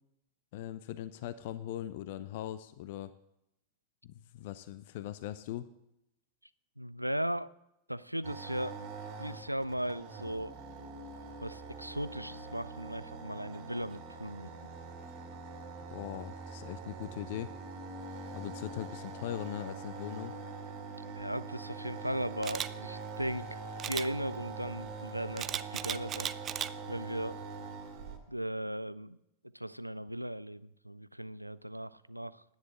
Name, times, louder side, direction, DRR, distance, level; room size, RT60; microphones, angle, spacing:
voice 1, 0.5-3.1 4.0-5.7 15.9-17.5 18.3-20.3, left 12 dB, 50° left, 14 dB, 0.5 m, -40 dB
voice 2, 6.8-7.5 7.9-8.8 9.2-10.6 11.4-14.5 21.0-23.6 23.8-26.3 26.9-27.4 28.3-29.2 29.5-32.4, equal, 90° right, 17 dB, 0.3 m, -37 dB
sound 1, 8.2-28.2, right 4 dB, 45° right, 2.0 m, -44 dB
Camera, 22.4-22.7 23.8-24.1 25.4-26.7 27.2-27.4, right 10 dB, 30° right, 0.4 m, -35 dB
10.5 x 9.9 x 6.4 m, 0.84 s
figure-of-eight pair, 90°, 0 cm